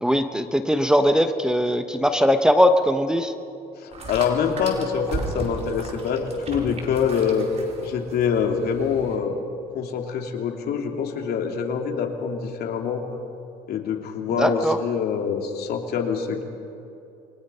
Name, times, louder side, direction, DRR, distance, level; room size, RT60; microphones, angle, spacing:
voice 1, 0.0-3.3 14.3-14.8, equal, 5° right, 8 dB, 1.0 m, -20 dB
voice 2, 3.8-7.5 7.8-9.4 9.7-13.0 13.7-16.4, left 6 dB, 70° left, 3 dB, 2.9 m, -25 dB
Slime Squish, 3.9-9.2, right 3 dB, 40° right, 4.6 m, -36 dB
28.5 x 23.5 x 5.6 m, 2.7 s
cardioid pair, 110°, 17 cm